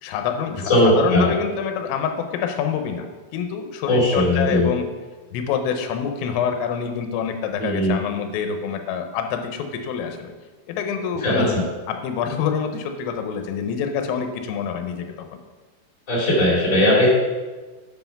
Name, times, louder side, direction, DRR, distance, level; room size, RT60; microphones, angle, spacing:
voice 1, 0.0-3.1 3.3-4.9 5.3-10.3 10.7-15.4, left 7 dB, 90° left, 6 dB, 3.6 m, -26 dB
voice 2, 0.7-1.3 3.8-4.7 7.6-8.0 11.2-11.6 16.1-17.1, left 1 dB, 20° left, -5 dB, 3.5 m, -18 dB
8.5 x 8.0 x 5.9 m, 1.3 s
omnidirectional pair, 5.7 m